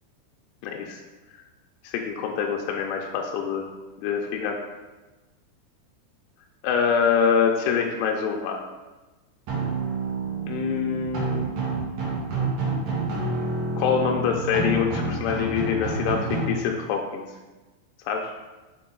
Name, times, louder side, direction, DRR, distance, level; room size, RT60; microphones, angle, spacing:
voice 1, 0.6-1.0 1.8-3.7 4.0-4.6 6.6-8.6 10.5-11.5 13.8-17.3 18.1-18.3, left 6 dB, 85° left, 1 dB, 3.0 m, -25 dB
sound 1, 9.5-16.5, right 3 dB, 70° right, 1.8 m, -28 dB
6.8 x 4.7 x 3.9 m, 1.2 s
omnidirectional pair, 5.5 m